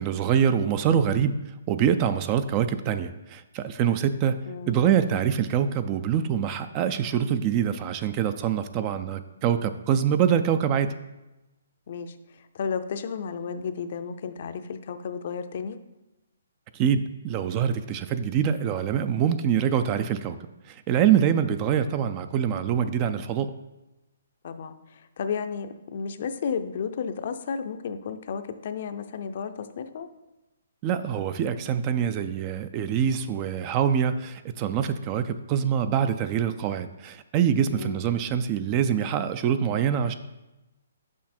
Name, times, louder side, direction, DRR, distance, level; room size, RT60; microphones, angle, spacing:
voice 1, 0.0-1.4 1.7-4.4 4.7-10.9 16.7-20.4 20.7-23.5 30.8-40.1, right 8 dB, 25° right, 11 dB, 0.3 m, -25 dB
voice 2, 4.5-4.8 11.9-15.8 24.4-30.1 37.7-38.0, left 6 dB, 50° left, 10 dB, 0.5 m, -33 dB
6.2 x 5.8 x 4.3 m, 1.0 s
hypercardioid pair, 160°, 0 cm